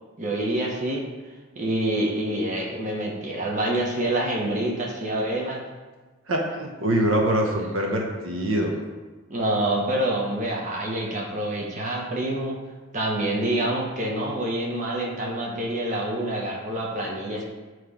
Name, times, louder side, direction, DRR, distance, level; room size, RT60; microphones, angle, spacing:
voice 1, 0.2-1.0 1.5-5.6 9.3-12.6 12.9-17.4, right 1 dB, 35° right, -2 dB, 1.0 m, -27 dB
voice 2, 6.3-8.7, right 1 dB, 75° right, 1 dB, 0.9 m, -24 dB
7.5 x 3.1 x 5.0 m, 1.3 s
head